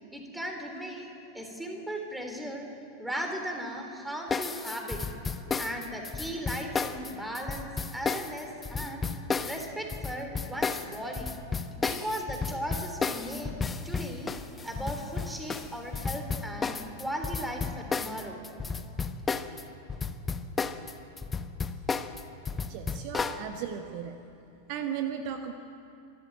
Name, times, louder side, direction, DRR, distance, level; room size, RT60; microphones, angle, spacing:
voice 1, 0.1-1.1 1.3-2.7 3.0-5.0 5.6-9.1 9.4-11.3 11.8-13.5 13.8-14.3 14.6-18.4, equal, 5° right, 3 dB, 3.4 m, -37 dB
sound 1, 4.3-19.6 19.9-23.4, left 5 dB, 15° left, 1.0 m, -32 dB
voice 2, 22.7-24.2 24.7-25.5, right 8 dB, 45° right, 7 dB, 1.2 m, -35 dB
25.5 x 13.0 x 9.3 m, 2.9 s
figure-of-eight pair, 90°, 0 cm